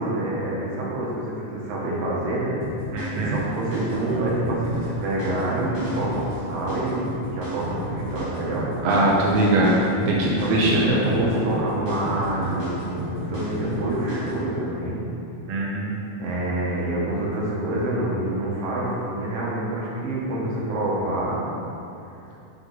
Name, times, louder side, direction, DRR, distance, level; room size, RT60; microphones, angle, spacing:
voice 1, 0.0-2.6 2.9-8.7 10.4-15.0 16.2-21.4, right 1 dB, 55° right, -5 dB, 2.1 m, -27 dB
sound 1, 2.6-14.4, right 1 dB, 30° left, 1.8 m, -33 dB
voice 2, 2.9-3.4 8.8-11.0 15.5-16.1, right 1 dB, 75° right, -5 dB, 1.6 m, -21 dB
7.1 x 6.6 x 4.8 m, 2.8 s
omnidirectional pair, 4.2 m